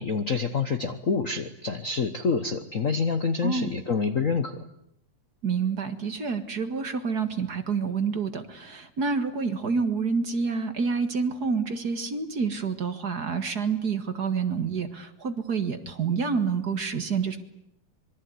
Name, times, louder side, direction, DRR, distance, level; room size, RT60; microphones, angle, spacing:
voice 1, 0.0-4.7, left 5 dB, 85° left, 9 dB, 0.7 m, -27 dB
voice 2, 5.4-17.4, right 5 dB, 40° right, 9 dB, 1.9 m, -28 dB
26.0 x 23.0 x 9.5 m, 0.76 s
omnidirectional pair, 3.4 m